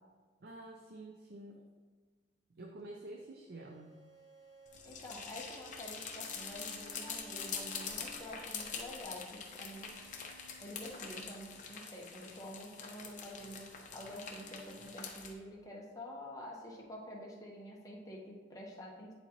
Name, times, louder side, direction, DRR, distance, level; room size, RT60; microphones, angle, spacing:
voice 1, 0.4-1.7 2.5-4.0, right 2 dB, 55° right, 2 dB, 0.5 m, -49 dB
sound 1, 3.5-12.0 12.5-14.8, right 2 dB, 85° right, 1.1 m, -60 dB
sound 2, 4.7-15.3, left 6 dB, 40° left, 0.8 m, -45 dB
voice 2, 4.8-9.9 10.3-19.1, equal, 20° left, -3 dB, 1.0 m, -48 dB
9.8 x 4.1 x 2.9 m, 1.5 s
head